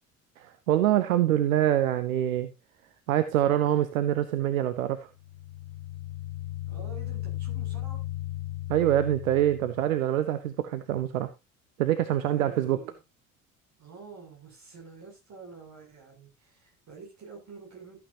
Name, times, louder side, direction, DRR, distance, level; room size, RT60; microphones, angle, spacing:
voice 1, 0.4-2.5 3.1-5.0 8.7-11.3 11.8-12.8, right 12 dB, 70° right, 11 dB, 0.9 m, -25 dB
sound 1, 5.2-9.9, left 15 dB, 75° left, 1.3 m, -36 dB
voice 2, 6.7-8.0 12.2-13.0 13.8-18.0, right 5 dB, 40° right, 0 dB, 7.3 m, -48 dB
14.0 x 9.3 x 2.7 m, 0.25 s
figure-of-eight pair, 60°, 43 cm